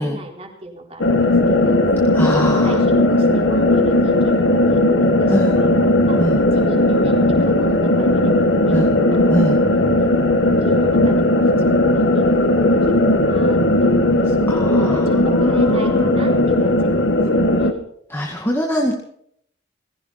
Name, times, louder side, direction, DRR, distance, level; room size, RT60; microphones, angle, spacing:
voice 1, 0.0-1.8 2.2-5.7 6.1-9.6 10.0-10.2 10.6-17.9, equal, 30° right, 1 dB, 4.2 m, -35 dB
sound 1, 1.0-17.7, left 1 dB, 80° left, 1.9 m, -16 dB
voice 2, 2.1-2.8 5.3-5.6 6.2-6.4 8.7-8.9 9.3-9.6 14.5-16.1 18.1-18.9, equal, 10° left, 0 dB, 2.0 m, -23 dB
19.5 x 16.5 x 4.2 m, 0.67 s
head